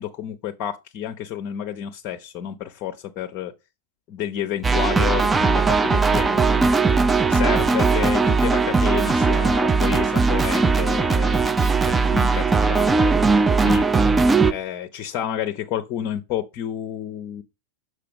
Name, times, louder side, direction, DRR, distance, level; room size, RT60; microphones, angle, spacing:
voice 1, 0.0-3.5 4.1-6.7 7.3-11.4 11.8-13.1 13.6-13.9 14.4-17.4, left 10 dB, 40° left, 0.6 m, -30 dB
sound 1, 4.6-14.5, right 4 dB, 15° right, 0.4 m, -19 dB
6.6 x 4.8 x 3.7 m
figure-of-eight pair, 90°, 0 cm